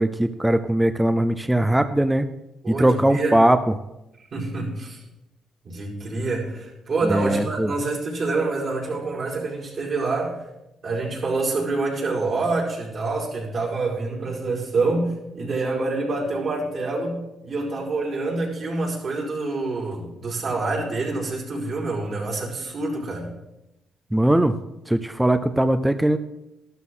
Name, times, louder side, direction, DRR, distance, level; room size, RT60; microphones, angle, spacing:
voice 1, 0.0-2.3 2.7-3.8 7.0-7.7 24.1-24.6 24.9-26.2, right 1 dB, 10° right, 10 dB, 0.6 m, -20 dB
voice 2, 2.6-3.4 4.3-5.0 5.6-10.3 10.8-23.3, right 3 dB, 50° right, -3 dB, 5.0 m, -26 dB
13.0 x 12.5 x 3.9 m, 0.91 s
cardioid pair, 90°, 0 cm